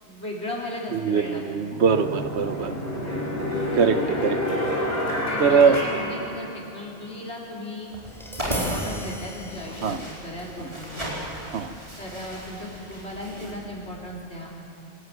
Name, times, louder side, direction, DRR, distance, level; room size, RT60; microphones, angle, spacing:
voice 1, 0.0-1.4 5.3-7.9 8.5-11.3 12.0-14.5, left 1 dB, 80° left, -3 dB, 4.1 m, -36 dB
voice 2, 0.9-2.7 3.7-4.6 5.4-5.8 9.8-10.0 11.5-11.7, right 6 dB, 75° right, 10 dB, 1.1 m, -22 dB
sound 1, 1.1-1.2 1.8-7.0, left 1 dB, 40° left, 4.9 m, -28 dB
sound 2, 7.8-13.5, equal, 30° right, 4.6 m, -35 dB
Tap, 8.1-14.2, equal, ahead, 3.8 m, -42 dB
25.0 x 14.0 x 9.3 m, 2.5 s
omnidirectional pair, 1.1 m